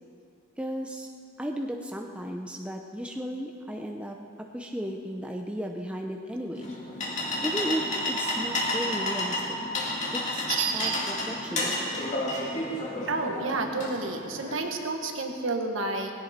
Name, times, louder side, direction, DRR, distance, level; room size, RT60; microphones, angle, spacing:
voice 1, 0.6-1.1 1.4-4.2 4.5-6.7 7.4-9.6 10.1-11.7, equal, 5° right, 1 dB, 0.7 m, -35 dB
sound 1, 6.5-14.5, left 1 dB, 35° left, 2.2 m, -31 dB
voice 2, 10.5-11.0 13.1-16.1, right 3 dB, 60° right, 3 dB, 1.5 m, -30 dB
18.5 x 16.5 x 4.3 m, 2.5 s
head